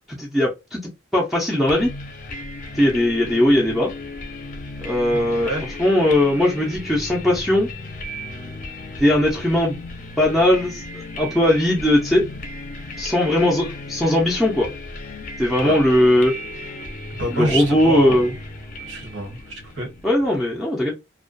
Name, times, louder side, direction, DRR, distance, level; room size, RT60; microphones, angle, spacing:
voice 1, 0.1-0.8 1.1-1.9 2.7-3.9 4.8-5.5 5.8-7.7 9.0-9.8 10.2-12.3 13.0-14.7 15.4-16.4 17.3-18.3 20.0-20.9, left 1 dB, ahead, 0.5 m, -19 dB
sound 1, 1.7-20.4, left 2 dB, 45° left, 0.6 m, -35 dB
voice 2, 5.1-5.6 15.6-15.8 17.1-18.3 18.8-19.9, right 1 dB, 75° right, 1.3 m, -27 dB
2.3 x 2.2 x 2.4 m
head